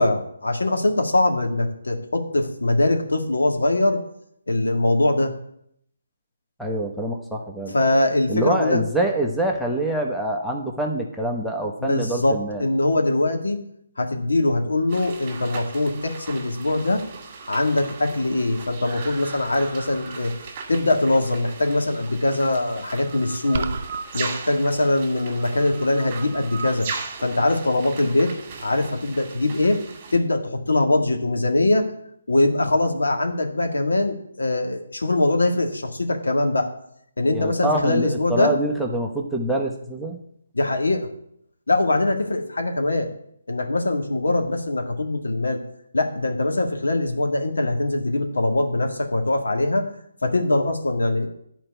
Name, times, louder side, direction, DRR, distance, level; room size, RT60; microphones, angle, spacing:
voice 1, 0.0-4.0 4.5-5.3 7.7-8.8 11.8-13.6 14.0-17.0 17.5-20.3 20.7-23.7 24.1-26.9 27.2-28.3 28.6-29.8 30.1-31.9 32.3-36.7 37.2-38.5 40.5-41.1 41.7-43.1 43.5-45.6 45.9-49.9 50.2-51.3, left 2 dB, 85° left, 3 dB, 1.8 m, -22 dB
voice 2, 6.6-7.7 8.3-12.6 37.3-40.2, right 1 dB, ahead, 0 dB, 0.9 m, -25 dB
Rain in the Rainforest with Northern Whipbird, 14.9-30.2, right 5 dB, 30° right, 2.0 m, -37 dB
sound 1, 23.5-24.0, right 4 dB, 45° right, 0.7 m, -28 dB
10.5 x 4.5 x 7.9 m, 0.72 s
hypercardioid pair, 155°, 0 cm